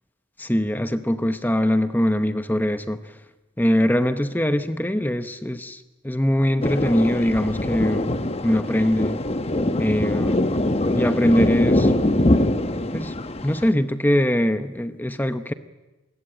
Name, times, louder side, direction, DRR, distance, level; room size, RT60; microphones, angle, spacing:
voice 1, 0.4-3.0 3.6-8.1 8.4-9.2 9.8-10.4 11.0-11.9 12.9-13.1 13.4-15.5, equal, 10° left, 10 dB, 0.9 m, -22 dB
Thunder, 6.6-13.7, left 1 dB, 30° left, 1.1 m, -23 dB
27.5 x 21.0 x 8.9 m, 1.1 s
head